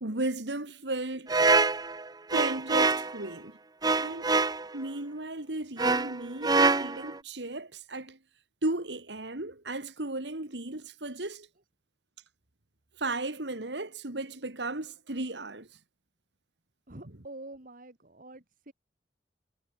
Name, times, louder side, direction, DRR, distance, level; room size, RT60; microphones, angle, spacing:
voice 1, 0.0-1.3 2.3-3.6 3.9-4.3 4.7-8.2 8.6-11.5 13.0-15.8, right 2 dB, 75° right, 2.6 m, -35 dB
sound 1, 1.3-3.2 3.8-4.7 5.8-7.2, right 3 dB, 20° right, 1.0 m, -25 dB
voice 2, 16.9-18.7, right 2 dB, 50° right, 2.6 m, -46 dB
head